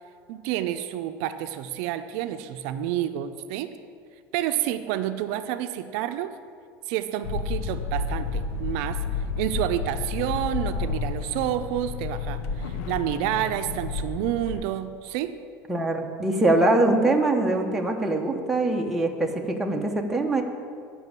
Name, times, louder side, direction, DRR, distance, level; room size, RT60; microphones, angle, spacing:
voice 1, 0.3-3.7 4.3-6.3 6.9-9.0 9.4-15.3, right 12 dB, 70° right, 9 dB, 0.5 m, -29 dB
sound 1, 7.2-14.6, left 4 dB, 85° left, 0.7 m, -31 dB
voice 2, 15.7-20.4, right 2 dB, 5° right, 1 dB, 0.9 m, -23 dB
9.1 x 6.0 x 8.0 m, 2.4 s
cardioid pair, 150°, 7 cm